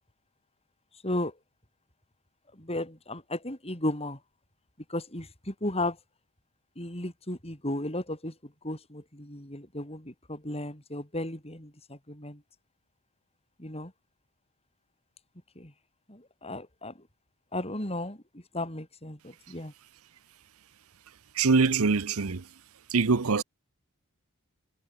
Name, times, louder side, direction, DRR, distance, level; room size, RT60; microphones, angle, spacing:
voice 1, 1.0-1.4 2.5-4.2 4.9-6.0 6.8-12.4 13.6-13.9 15.6-15.7 16.1-17.1 17.5-19.7, left 1 dB, 25° left, 7.5 m, -35 dB
voice 2, 21.3-22.4 22.9-23.4, right 4 dB, 70° right, 0.8 m, -23 dB
head